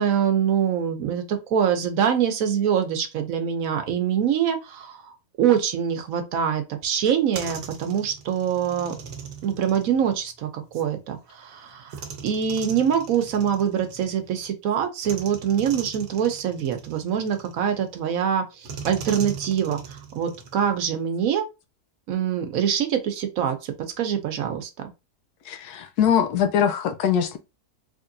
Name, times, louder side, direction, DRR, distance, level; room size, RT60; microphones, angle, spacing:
voice 1, 0.0-5.1 5.4-8.9 9.4-12.0 12.2-21.4 22.1-24.7, right 8 dB, 70° right, 1.0 m, -24 dB
sound 1, 7.0-10.9 11.9-14.5 15.0-17.9 18.6-21.1, right 6 dB, 90° right, 1.3 m, -40 dB
voice 2, 25.5-27.4, left 8 dB, 85° left, 1.2 m, -22 dB
3.6 x 3.3 x 2.6 m
omnidirectional pair, 1.6 m